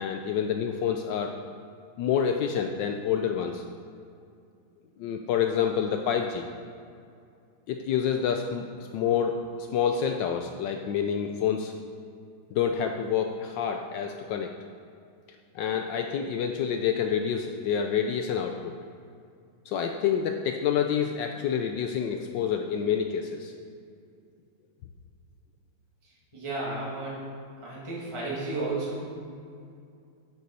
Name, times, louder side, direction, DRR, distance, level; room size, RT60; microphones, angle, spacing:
voice 1, 0.0-1.3 2.0-3.6 5.0-6.5 7.7-11.7 12.5-14.5 15.5-18.7 19.7-23.5, left 8 dB, 75° left, 4 dB, 1.1 m, -28 dB
voice 2, 26.3-27.3 27.6-29.0, right 2 dB, 15° right, -6 dB, 1.9 m, -32 dB
10.5 x 7.0 x 4.2 m, 2.4 s
omnidirectional pair, 2.3 m